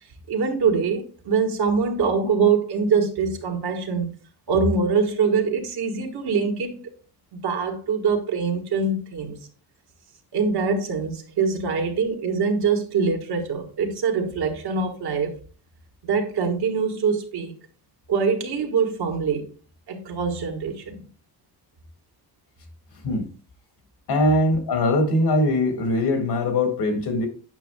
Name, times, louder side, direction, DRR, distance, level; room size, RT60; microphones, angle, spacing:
voice 1, 0.3-4.1 4.5-6.8 7.3-9.4 10.3-15.3 16.0-17.6 18.1-19.5 19.9-21.1, right 5 dB, 80° right, 1.5 m, -23 dB
voice 2, 24.1-27.3, left 1 dB, 85° left, 1.9 m, -21 dB
8.9 x 6.3 x 2.2 m
wide cardioid pair, 140°, 38 cm